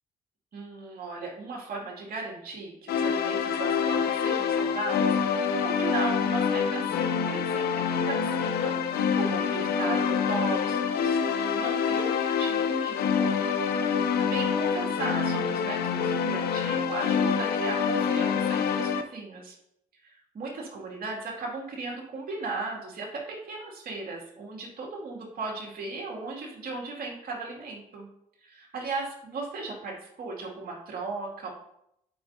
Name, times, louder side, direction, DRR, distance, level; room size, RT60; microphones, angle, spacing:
voice 1, 0.5-13.4 14.2-19.6 20.0-28.1 28.4-31.5, right 3 dB, 65° right, -2 dB, 2.3 m, -37 dB
sound 1, 2.9-19.0, left 6 dB, 80° left, 0.7 m, -26 dB
11.5 x 5.2 x 2.7 m, 0.77 s
supercardioid pair, 55°, 16 cm